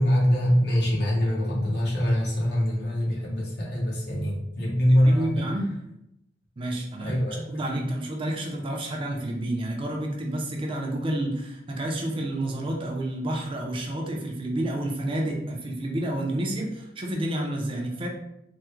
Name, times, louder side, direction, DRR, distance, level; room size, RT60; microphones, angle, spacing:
voice 1, 0.0-5.5 7.0-7.5 7.8-7.9 8.8-8.9, equal, 65° left, -4 dB, 1.0 m, -24 dB
voice 2, 5.0-5.8 6.6-7.2 7.5-18.1, right 1 dB, 30° right, 0 dB, 0.5 m, -29 dB
3.4 x 2.1 x 3.0 m, 0.82 s
head